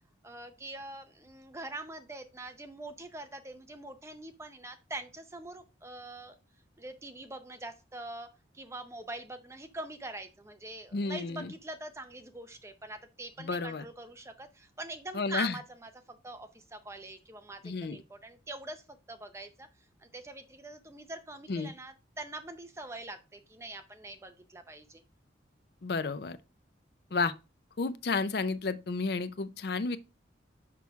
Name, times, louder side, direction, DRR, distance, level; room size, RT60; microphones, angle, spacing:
voice 1, 0.2-6.4 6.8-8.3 8.5-18.8 19.1-19.7 20.0-25.0, right 2 dB, 15° right, 0.6 m, -43 dB
voice 2, 10.9-11.5 13.4-13.9 15.1-15.6 17.6-18.0 21.5-21.7 25.8-26.4 27.1-27.3 27.8-30.0, left 4 dB, 55° left, 0.5 m, -31 dB
6.1 x 5.9 x 3.5 m
head